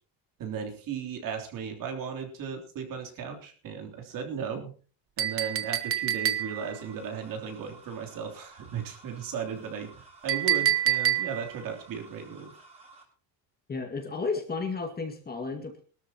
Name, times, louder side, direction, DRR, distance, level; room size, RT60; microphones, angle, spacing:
voice 1, 0.4-4.7 5.2-12.5, right 6 dB, 50° right, 3 dB, 3.3 m, -36 dB
Chink clink, 5.2-6.8 10.3-11.6, right 11 dB, 35° right, 1.0 m, -27 dB
sound 1, 6.4-13.0, right 3 dB, 15° right, 4.3 m, -53 dB
voice 2, 13.7-15.8, left 4 dB, 25° left, 3 dB, 2.1 m, -33 dB
21.5 x 13.0 x 3.0 m, 0.39 s
cardioid pair, 150°, 41 cm